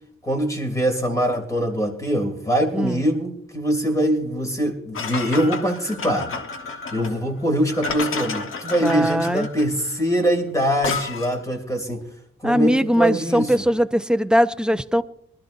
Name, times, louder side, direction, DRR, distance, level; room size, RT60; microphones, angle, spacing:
voice 1, 0.2-6.3 6.9-12.0 12.4-13.5, equal, 15° left, 2.5 m, -23 dB
sound 1, 4.9-11.5, left 4 dB, 80° left, 1.4 m, -31 dB
voice 2, 8.8-9.5 12.4-15.0, equal, 5° right, 0.4 m, -20 dB
23.5 x 13.0 x 2.6 m
wide cardioid pair, 180°, 21 cm